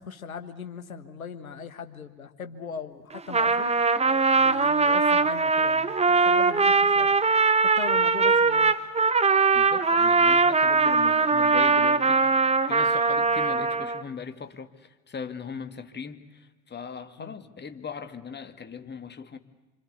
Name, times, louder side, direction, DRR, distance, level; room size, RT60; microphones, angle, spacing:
voice 1, 0.0-3.7 4.4-7.1 7.6-8.7 17.2-17.3, left 6 dB, 85° left, 9 dB, 1.5 m, -39 dB
Trumpet, 3.1-14.0, right 4 dB, 15° right, 1.2 m, -21 dB
voice 2, 9.5-12.2 12.7-19.4, left 6 dB, 25° left, 8 dB, 2.2 m, -39 dB
27.0 x 26.5 x 8.4 m, 1.2 s
figure-of-eight pair, 65°, 41 cm